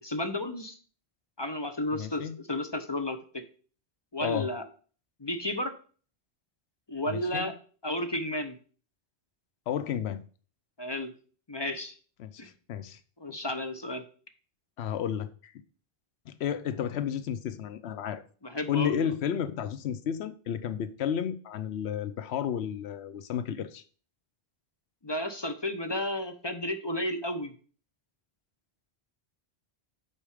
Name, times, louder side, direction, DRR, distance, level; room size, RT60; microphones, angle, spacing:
voice 1, 0.0-0.8 1.4-3.4 4.1-4.6 5.2-5.7 6.9-7.5 7.8-8.6 10.8-11.1 11.5-11.9 12.4-12.5 13.2-14.0 18.4-19.1 25.0-27.5, left 1 dB, 30° left, 0.7 m, -32 dB
voice 2, 1.9-2.4 4.2-4.5 7.1-7.5 9.7-10.2 12.2-13.0 13.3-13.4 14.8-15.5 16.3-18.2 18.7-23.8, left 9 dB, 90° left, 0.9 m, -32 dB
8.4 x 4.4 x 4.9 m
omnidirectional pair, 1.1 m